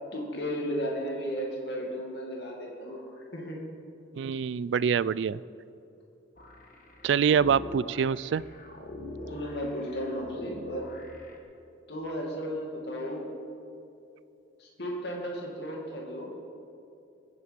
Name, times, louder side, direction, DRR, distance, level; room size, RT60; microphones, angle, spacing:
voice 1, 0.1-3.6 9.3-10.9 11.9-13.3 14.6-16.3, equal, 60° left, -1 dB, 2.2 m, -34 dB
voice 2, 4.1-5.4 7.0-8.4, right 7 dB, 75° right, 19 dB, 0.3 m, -25 dB
sound 1, 6.4-11.4, left 1 dB, 45° left, 1.6 m, -43 dB
20.5 x 9.6 x 5.2 m, 2.7 s
head